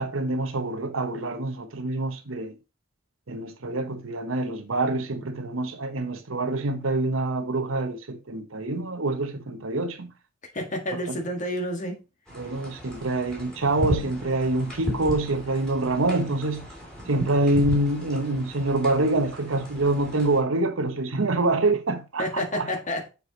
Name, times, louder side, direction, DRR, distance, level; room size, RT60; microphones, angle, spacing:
voice 1, 0.0-2.6 3.3-10.1 11.1-11.2 12.3-16.7 17.1-22.7, right 2 dB, 75° right, 1.0 m, -26 dB
voice 2, 10.5-12.0 22.2-23.1, left 1 dB, 40° left, 1.7 m, -29 dB
sound 1, 12.3-20.4, right 1 dB, 5° left, 2.3 m, -36 dB
6.8 x 4.8 x 3.9 m
head